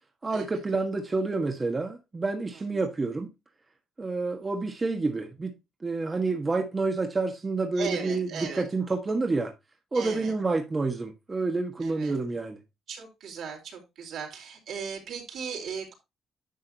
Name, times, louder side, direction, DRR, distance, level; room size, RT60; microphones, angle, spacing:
voice 1, 0.2-3.3 4.0-5.5 5.8-9.5 9.9-12.6, right 3 dB, 25° right, 1.4 m, -28 dB
voice 2, 7.8-8.6 9.9-10.3 11.8-12.1 12.9-15.9, right 6 dB, 70° right, 4.1 m, -37 dB
10.5 x 6.3 x 2.9 m
cardioid pair, 90°, 0 cm